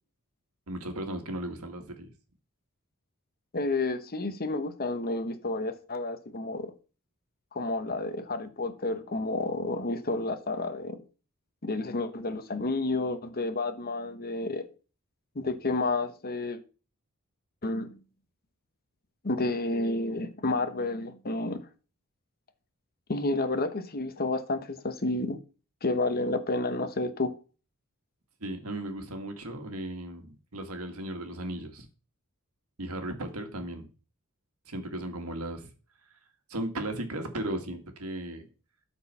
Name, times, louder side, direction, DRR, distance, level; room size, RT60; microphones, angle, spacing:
voice 1, 0.7-2.1 28.4-31.9 32.8-33.9 34.7-35.7 36.5-38.5, right 1 dB, 70° right, 1.8 m, -36 dB
voice 2, 3.5-6.7 7.5-11.0 11.6-14.7 15.3-16.6 17.6-18.0 19.2-21.7 23.1-25.4 25.8-27.3, left 2 dB, 45° left, 1.1 m, -30 dB
12.5 x 4.5 x 5.5 m
head